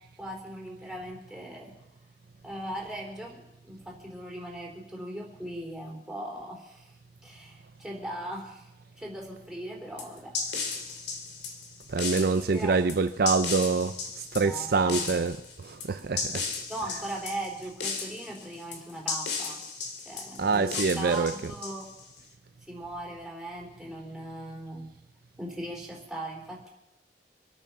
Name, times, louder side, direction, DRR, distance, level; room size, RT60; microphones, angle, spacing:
voice 1, 0.2-1.7 2.4-6.9 7.2-8.7 9.0-10.4 10.6-10.7 12.5-12.8 14.4-15.2 16.7-19.6 20.0-21.9 22.7-24.9 25.4-26.7, right 1 dB, 5° right, 3.6 m, -39 dB
sound 1, 10.0-22.2, left 4 dB, 70° left, 2.4 m, -35 dB
voice 2, 11.9-16.5 20.4-21.3, right 4 dB, 55° right, 0.5 m, -26 dB
25.5 x 9.0 x 5.9 m
head